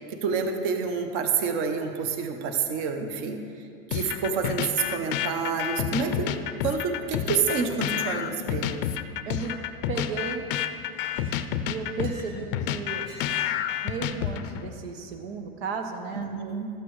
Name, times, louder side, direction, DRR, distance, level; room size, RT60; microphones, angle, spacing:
voice 1, 0.0-3.4 3.9-6.3 6.6-8.8 16.1-16.7, right 5 dB, 35° right, 5 dB, 0.7 m, -28 dB
sound 1, 3.9-14.7, left 10 dB, 65° left, 0.5 m, -29 dB
Chink clink, 9.3-9.6 9.9-10.4 10.9-12.4 13.0-13.7, right 1 dB, 20° right, 1.6 m, -50 dB
voice 2, 9.9-10.5 11.7-13.0 13.8-16.3, right 5 dB, 80° right, 4 dB, 0.9 m, -34 dB
13.0 x 8.3 x 3.1 m, 2.4 s
supercardioid pair, 175°, 30 cm